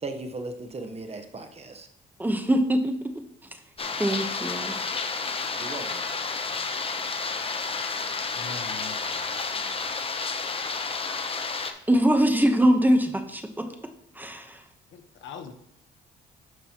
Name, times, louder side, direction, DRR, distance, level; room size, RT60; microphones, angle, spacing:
voice 1, 0.0-1.9 5.6-6.0, right 2 dB, 30° right, 7 dB, 1.0 m, -37 dB
voice 2, 2.2-3.0 4.0-4.8 11.9-13.7 14.2-14.6, equal, 10° right, 6 dB, 1.0 m, -22 dB
sound 1, 3.8-11.7, left 4 dB, 30° left, 0.8 m, -31 dB
voice 3, 8.3-9.9 14.9-15.5, left 6 dB, 75° left, 6 dB, 1.1 m, -43 dB
9.3 x 6.1 x 3.0 m, 0.76 s
cardioid pair, 90°, 20 cm